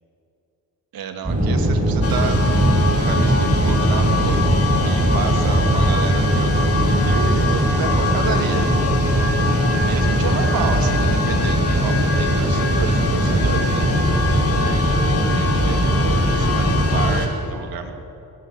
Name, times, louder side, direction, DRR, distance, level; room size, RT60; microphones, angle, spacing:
voice 1, 0.9-4.4 4.8-8.7 9.8-14.8 15.3-17.9, right 7 dB, 75° right, 5 dB, 2.2 m, -30 dB
sound 1, 1.2-17.1, equal, 20° right, 5.6 m, -19 dB
sound 2, 2.0-17.3, left 4 dB, 40° left, 3.4 m, -26 dB
19.5 x 18.0 x 7.7 m, 2.8 s
cardioid pair, 85°, 36 cm